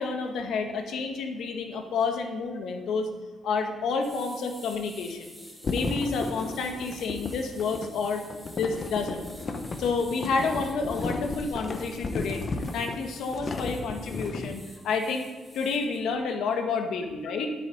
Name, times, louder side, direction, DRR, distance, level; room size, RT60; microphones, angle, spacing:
voice 1, 0.0-3.1 3.4-5.4 5.7-8.2 8.6-9.3 9.8-12.4 12.7-15.3 15.5-17.5, left 4 dB, 70° left, 4 dB, 1.8 m, -29 dB
sound 1, 4.0-16.0, equal, 5° left, 2.2 m, -50 dB
sound 2, 5.6-14.6, left 3 dB, 30° left, 1.0 m, -34 dB
10.5 x 8.9 x 9.4 m, 1.3 s
cardioid pair, 165°, 0 cm